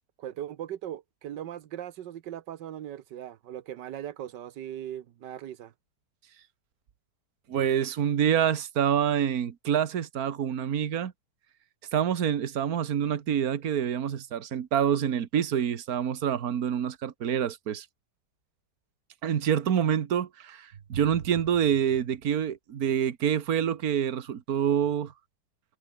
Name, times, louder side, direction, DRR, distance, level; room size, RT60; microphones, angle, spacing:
voice 1, 0.2-5.7, right 11 dB, 90° right, 1.6 m, -39 dB
voice 2, 7.5-11.1 11.9-17.9 19.2-25.1, right 9 dB, 60° right, 1.7 m, -27 dB
omnidirectional pair, 1.8 m